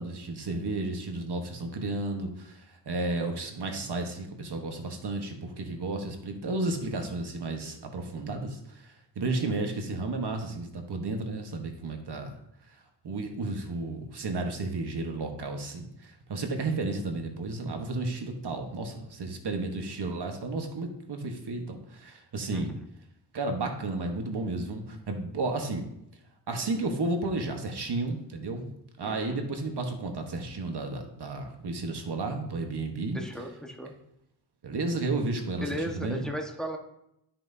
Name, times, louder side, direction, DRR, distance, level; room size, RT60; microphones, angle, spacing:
voice 1, 0.0-12.4 13.0-22.7 23.3-25.9 26.5-28.7 29.0-33.2 34.6-36.2, right 2 dB, 65° right, 4 dB, 1.2 m, -32 dB
voice 2, 29.0-29.4 33.1-33.9 35.6-36.8, equal, ahead, 1 dB, 1.3 m, -36 dB
13.0 x 5.9 x 2.7 m, 0.81 s
cardioid pair, 75°, 43 cm